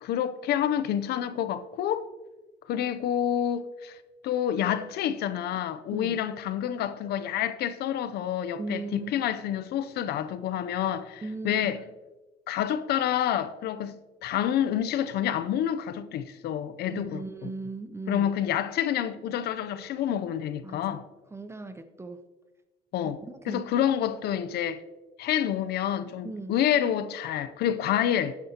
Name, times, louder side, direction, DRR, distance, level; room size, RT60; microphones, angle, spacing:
voice 1, 0.0-2.0 2.7-4.0 4.2-11.8 12.5-13.9 14.2-17.2 18.1-21.0 22.9-23.2 23.5-24.8 25.2-28.3, left 10 dB, 70° left, 0.6 m, -28 dB
voice 2, 8.6-9.3 11.2-11.7 16.9-18.3 20.6-21.0 21.3-22.2 23.0-23.7 26.2-26.6, right 3 dB, 15° right, 0.6 m, -38 dB
12.0 x 9.5 x 2.9 m
cardioid pair, 110°, 17 cm